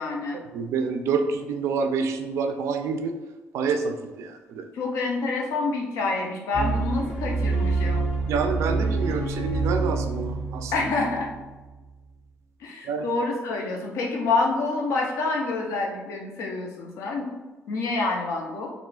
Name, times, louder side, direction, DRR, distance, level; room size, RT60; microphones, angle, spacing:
voice 1, 0.0-0.4 4.7-8.1 10.7-11.3 12.6-17.2 17.7-18.7, left 3 dB, 85° left, 0 dB, 0.6 m, -27 dB
voice 2, 0.5-3.1 3.5-4.7 8.3-10.7 12.9-13.1, right 5 dB, 75° right, 6 dB, 0.3 m, -27 dB
sound 1, 6.5-11.8, right 3 dB, 20° left, 0.9 m, -27 dB
3.6 x 2.3 x 2.3 m, 1.1 s
cardioid pair, 150°, 5 cm